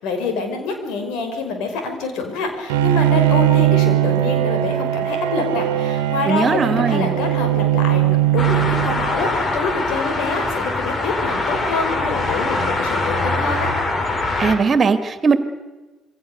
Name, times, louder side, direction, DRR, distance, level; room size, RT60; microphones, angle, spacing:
voice 1, 0.0-13.7, left 4 dB, 65° left, 5 dB, 5.5 m, -26 dB
Bowed string instrument, 2.7-9.4, right 13 dB, 75° right, 1.6 m, -19 dB
voice 2, 6.3-7.1 14.4-15.4, right 5 dB, 40° right, 10 dB, 2.4 m, -18 dB
sound 1, 8.4-14.6, left 2 dB, 40° left, 5.1 m, -23 dB
27.5 x 23.5 x 6.9 m, 1.2 s
figure-of-eight pair, 50°, 0 cm